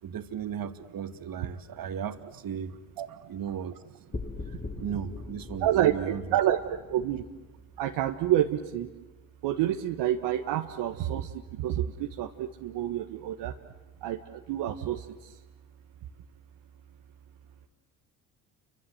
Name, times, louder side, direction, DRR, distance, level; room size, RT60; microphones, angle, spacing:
voice 1, 0.0-2.8 3.1-3.8 4.5-6.2, right 8 dB, 55° right, 8 dB, 2.4 m, -36 dB
sound 1, 4.1-8.5, left 3 dB, 20° left, 1.7 m, -42 dB
voice 2, 5.6-5.9 6.3-6.6 6.9-7.2 7.8-8.9 9.4-11.3 11.6-13.5 14.0-14.2 14.5-15.0, right 12 dB, 75° right, 4 dB, 1.6 m, -27 dB
29.5 x 25.0 x 8.0 m, 1.2 s
supercardioid pair, 70°, 42 cm